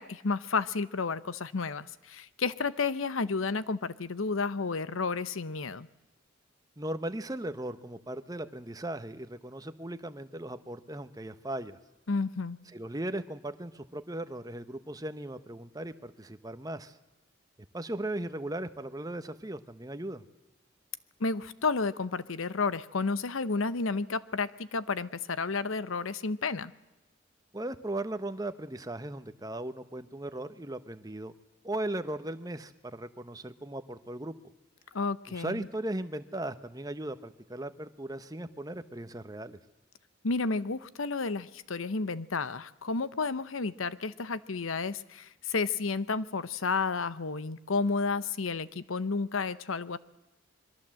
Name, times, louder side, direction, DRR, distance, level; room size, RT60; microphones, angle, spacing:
voice 1, 0.0-5.9 12.1-12.6 21.2-26.7 34.9-35.7 40.2-50.0, left 4 dB, 80° left, 16 dB, 0.9 m, -31 dB
voice 2, 6.8-11.8 12.7-17.0 17.7-20.2 27.5-31.3 31.6-34.3 35.3-39.6, right 1 dB, 20° right, 11 dB, 1.0 m, -37 dB
26.5 x 22.5 x 7.7 m, 1.0 s
head